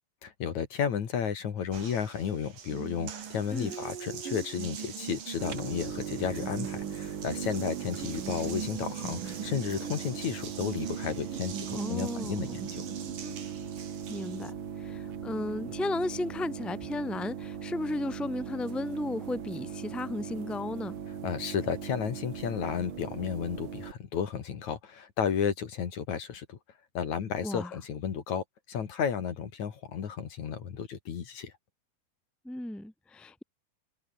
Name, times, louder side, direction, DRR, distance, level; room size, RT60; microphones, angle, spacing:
voice 1, 0.2-12.8 21.2-26.6 26.9-31.5, left 7 dB, 55° left, 3.4 m, -33 dB
Water tap faucet, 1.7-14.5, right 7 dB, 70° right, 4.5 m, -40 dB
sound 1, 5.4-23.9, right 8 dB, 45° right, 1.9 m, -39 dB
voice 2, 11.7-12.6 14.1-21.0 27.4-27.7 32.4-33.4, left 1 dB, ahead, 2.1 m, -34 dB
omnidirectional pair, 4.0 m